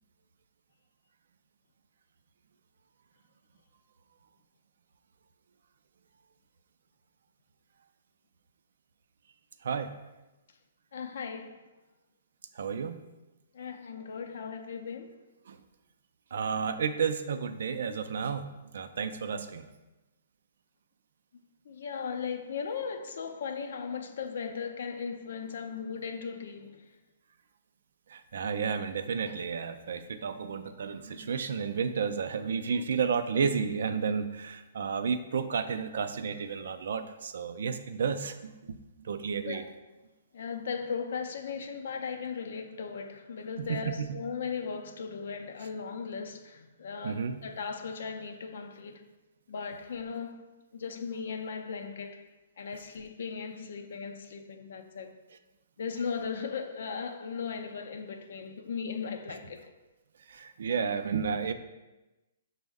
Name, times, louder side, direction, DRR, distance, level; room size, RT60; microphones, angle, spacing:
voice 1, 9.6-9.9 12.6-13.0 15.5-15.6 16.3-18.5 18.7-19.7 28.1-38.5 39.0-39.6 43.6-44.2 47.0-47.4 60.3-61.5, right 6 dB, 70° right, 0.3 m, -32 dB
voice 2, 10.9-11.6 13.5-15.2 21.7-26.9 39.4-39.7 40.3-49.0 49.5-50.4 50.7-52.3 52.6-55.1 55.8-59.7, left 6 dB, 70° left, 0.4 m, -37 dB
5.3 x 2.0 x 3.4 m
hypercardioid pair, 135°, 0 cm